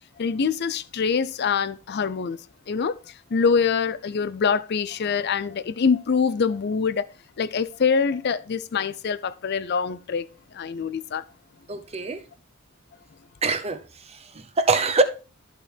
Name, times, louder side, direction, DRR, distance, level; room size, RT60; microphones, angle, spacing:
voice 1, 0.2-2.4 2.7-3.0 3.3-7.1 7.4-10.3 10.5-11.2, left 5 dB, 50° left, 0.4 m, -24 dB
voice 2, 11.7-12.2 13.4-13.8 14.1-15.0, right 3 dB, 30° right, 0.7 m, -24 dB
13.0 x 4.4 x 3.4 m
head